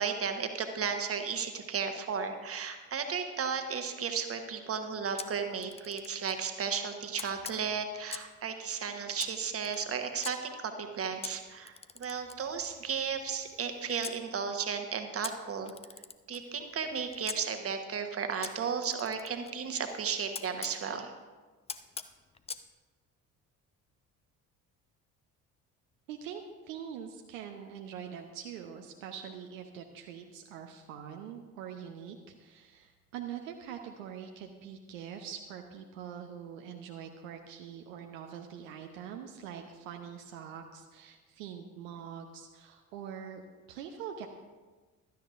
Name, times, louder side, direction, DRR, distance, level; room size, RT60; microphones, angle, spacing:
voice 1, 0.0-15.7 16.3-21.1, right 6 dB, 35° right, 6 dB, 1.2 m, -34 dB
Camera, 5.2-6.4 7.2-8.4 9.2-10.3 11.2-14.2 15.2-17.4 18.4-20.8 21.7-22.7, left 5 dB, 15° left, 0.5 m, -44 dB
voice 2, 26.1-44.3, right 8 dB, 70° right, 4 dB, 0.8 m, -44 dB
16.0 x 12.5 x 2.6 m, 1.4 s
figure-of-eight pair, 50°, 41 cm